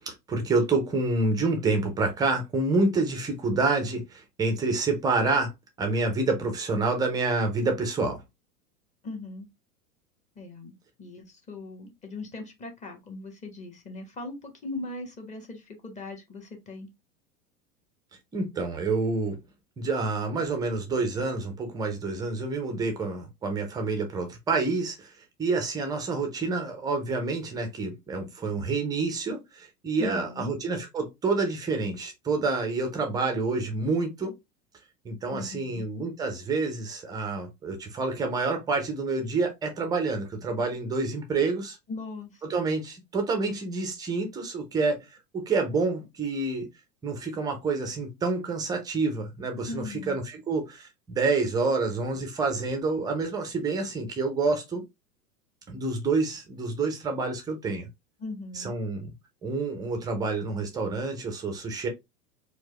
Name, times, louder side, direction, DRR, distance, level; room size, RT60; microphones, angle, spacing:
voice 1, 0.1-5.5 5.8-8.2 18.3-19.4 19.8-25.1 25.4-34.3 35.0-41.8 42.4-45.0 45.3-46.7 47.0-54.8 55.7-57.9 58.5-59.1 59.4-61.9, right 3 dB, 10° right, 0.5 m, -28 dB
voice 2, 9.0-9.5 10.4-16.9 30.0-30.5 35.3-35.9 41.9-42.4 49.7-50.2 58.2-58.8, left 2 dB, 15° left, 0.9 m, -39 dB
4.5 x 2.1 x 2.9 m
figure-of-eight pair, 90°, 48 cm